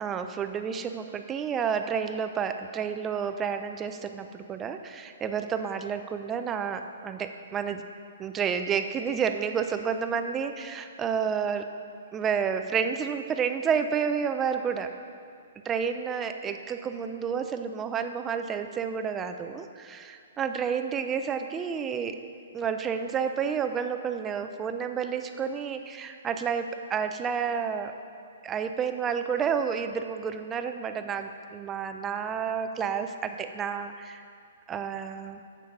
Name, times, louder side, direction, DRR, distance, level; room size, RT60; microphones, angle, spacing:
voice 1, 0.0-7.8 8.2-11.7 12.1-14.9 15.6-22.2 22.5-27.9 28.4-34.2 34.7-35.4, right 7 dB, 15° right, 8 dB, 0.4 m, -30 dB
8.5 x 7.4 x 5.3 m, 2.3 s
hypercardioid pair, 165°, 0 cm